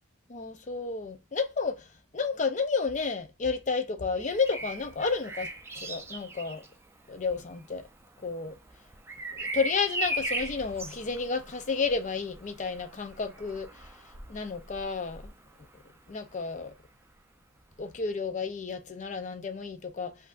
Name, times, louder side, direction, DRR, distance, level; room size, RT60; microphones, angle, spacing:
voice 1, 0.3-1.9 2.1-6.6 7.1-7.9 8.2-8.6 9.3-13.7 14.3-15.2 16.1-16.7 17.8-20.2, left 4 dB, 35° left, 0.5 m, -31 dB
Bird vocalization bird call bird song, 4.2-16.0 17.7-17.9, right 2 dB, 10° right, 0.5 m, -39 dB
7.6 x 2.7 x 2.5 m
head